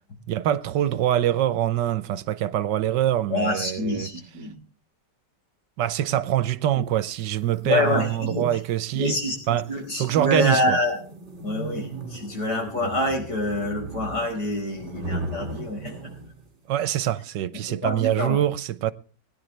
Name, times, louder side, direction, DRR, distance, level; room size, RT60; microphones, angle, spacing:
voice 1, 0.3-4.1 5.8-9.2 9.5-9.6 10.0-10.8 16.7-18.9, right 11 dB, 80° right, 1.4 m, -24 dB
voice 2, 3.3-4.5 7.6-8.5 8.9-11.0 11.4-16.0 17.7-18.4, left 1 dB, 65° left, 5.7 m, -26 dB
sound 1, 7.2-16.6, right 2 dB, 40° right, 2.3 m, -38 dB
21.0 x 10.5 x 3.3 m
omnidirectional pair, 1.9 m